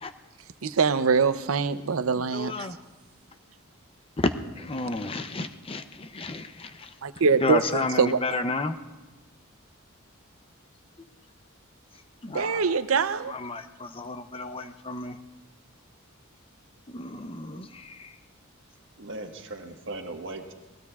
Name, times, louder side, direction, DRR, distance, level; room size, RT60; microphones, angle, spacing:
voice 1, 0.6-2.7 7.0-8.2 12.3-13.3, right 5 dB, 85° right, 0.6 m, -24 dB
voice 2, 2.2-2.8 4.2-6.9 7.4-8.7 12.2-12.8 13.3-15.2 16.9-18.2, left 2 dB, 25° left, 0.6 m, -32 dB
voice 3, 19.0-20.5, right 2 dB, 65° right, 1.5 m, -38 dB
26.5 x 19.5 x 2.4 m
head